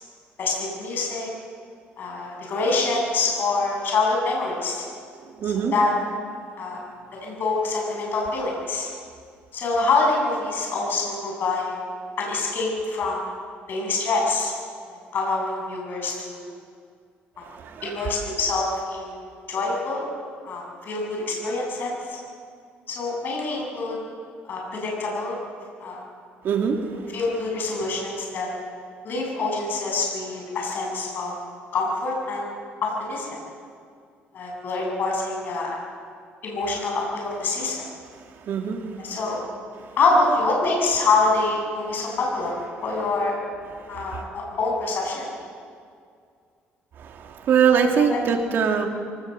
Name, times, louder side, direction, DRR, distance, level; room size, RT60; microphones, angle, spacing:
voice 1, 0.4-1.3 2.0-4.8 5.4-5.9 6.6-6.8 7.2-8.9 9.5-11.8 12.2-13.2 13.7-14.5 14.9-16.4 17.8-20.0 20.4-22.2 22.9-24.0 24.5-25.4 25.8-26.0 27.1-28.5 29.0-31.3 31.7-32.5 32.8-33.3 34.3-35.8 36.4-37.8 39.0-39.4 40.0-43.3 43.9-45.3 47.9-48.2, left 3 dB, 50° left, -1 dB, 7.8 m, -25 dB
voice 2, 5.4-5.7 17.5-17.8 26.4-26.8 38.5-38.8 47.0-48.9, right 7 dB, 55° right, 3 dB, 3.0 m, -22 dB
24.0 x 19.0 x 8.0 m, 2.2 s
cardioid pair, 120°, 4 cm